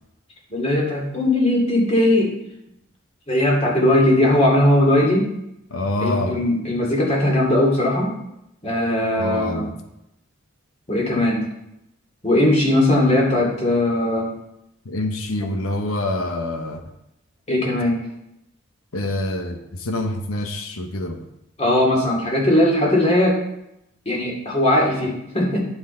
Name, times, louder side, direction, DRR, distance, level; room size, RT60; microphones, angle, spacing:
voice 1, 0.5-2.3 3.3-5.3 6.0-8.1 8.6-9.7 10.9-11.5 12.2-14.3 17.5-18.0 21.6-23.4 24.1-25.6, left 1 dB, 30° left, -2 dB, 2.4 m, -19 dB
voice 2, 5.7-6.3 9.1-9.7 14.8-16.8 18.9-21.2, left 1 dB, 85° left, 5 dB, 1.0 m, -26 dB
10.0 x 6.2 x 4.3 m, 0.84 s
head